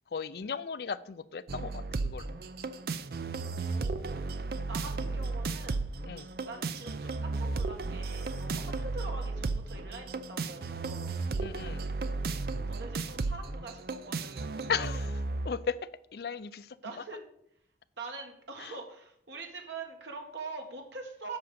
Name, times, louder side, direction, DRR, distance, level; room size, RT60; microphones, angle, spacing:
voice 1, 0.1-2.3 6.1-6.3 11.4-11.8 14.7-15.8 16.1-16.7 18.6-18.7, left 6 dB, 60° left, 15 dB, 0.4 m, -36 dB
sound 1, 1.5-15.5, right 3 dB, 60° right, 0.5 m, -34 dB
voice 2, 3.5-4.3 4.7-5.8 6.2-11.2 12.7-14.6 16.8-17.2 18.0-21.4, right 3 dB, 85° right, 2 dB, 1.6 m, -44 dB
8.1 x 5.2 x 6.9 m, 0.72 s
head